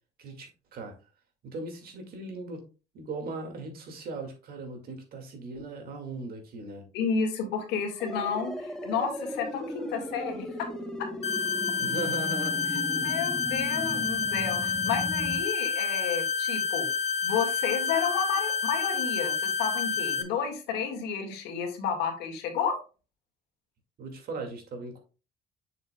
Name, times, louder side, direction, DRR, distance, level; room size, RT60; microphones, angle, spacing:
voice 1, 0.2-0.9 1.4-2.6 2.9-6.8 11.8-13.1 24.0-25.0, right 3 dB, 60° right, 4 dB, 2.1 m, -38 dB
voice 2, 6.9-10.7 11.0-11.1 13.0-16.9 17.2-22.8, left 6 dB, 90° left, 3 dB, 1.9 m, -31 dB
sound 1, 8.0-15.4, left 1 dB, 5° left, 0.9 m, -37 dB
sound 2, 11.2-20.2, left 6 dB, 40° left, 0.9 m, -29 dB
6.9 x 6.7 x 2.2 m, 0.33 s
cardioid pair, 110°, 17 cm